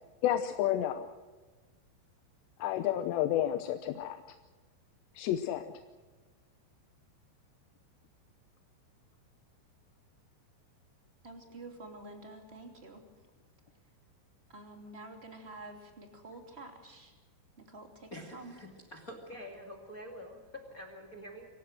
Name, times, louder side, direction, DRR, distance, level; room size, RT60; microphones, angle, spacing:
voice 1, 0.2-1.1 2.6-4.2 5.2-5.6, left 11 dB, 75° left, 8 dB, 2.7 m, -30 dB
voice 2, 11.2-13.0 14.5-17.1 17.6-18.5, right 2 dB, 20° right, 4 dB, 1.9 m, -48 dB
voice 3, 18.1-21.5, equal, 35° left, 3 dB, 1.3 m, -46 dB
25.5 x 17.0 x 6.3 m, 1.3 s
omnidirectional pair, 5.8 m